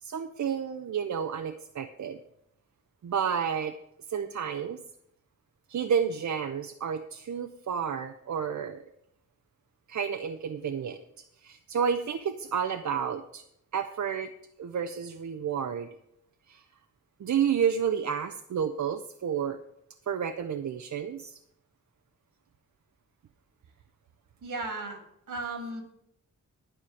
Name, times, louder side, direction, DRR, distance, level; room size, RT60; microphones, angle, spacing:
voice 1, 0.0-2.2 3.0-3.7 4.1-4.8 5.7-8.8 9.9-11.0 11.4-13.4 13.7-14.3 14.6-15.9 16.5-16.6 17.2-19.6 20.1-21.4, right 7 dB, 65° right, 8 dB, 0.6 m, -30 dB
voice 2, 24.4-25.0 25.3-25.8, right 2 dB, 85° right, 4 dB, 2.7 m, -35 dB
11.5 x 4.9 x 8.4 m, 0.76 s
wide cardioid pair, 125°, 31 cm